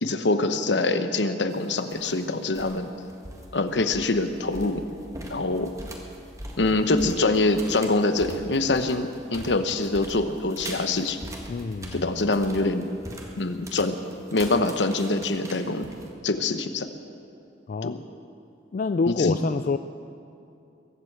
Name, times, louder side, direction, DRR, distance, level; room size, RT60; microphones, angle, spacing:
voice 1, 0.0-2.9 3.5-4.8 5.3-5.7 6.6-11.2 11.9-12.9 13.4-14.0 14.3-15.9 16.2-16.9 17.8-18.0 19.2-19.4, left 2 dB, 70° left, 9 dB, 1.0 m, -24 dB
sound 1, 1.5-2.1 2.4-2.8 3.1-16.1, right 1 dB, 20° right, 1.6 m, -41 dB
voice 2, 11.5-12.4 17.7-18.0 18.7-19.8, left 4 dB, 45° left, 9 dB, 0.4 m, -27 dB
22.0 x 8.0 x 8.0 m, 2.7 s
head